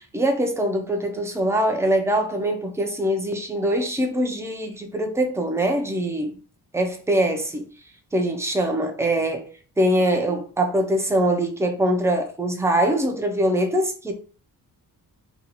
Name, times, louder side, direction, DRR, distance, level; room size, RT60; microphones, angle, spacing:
voice 1, 0.0-6.4 6.7-7.7 8.1-9.5 9.8-14.1, right 1 dB, 5° right, 0.5 m, -23 dB
2.9 x 2.4 x 3.9 m
wide cardioid pair, 130°, 38 cm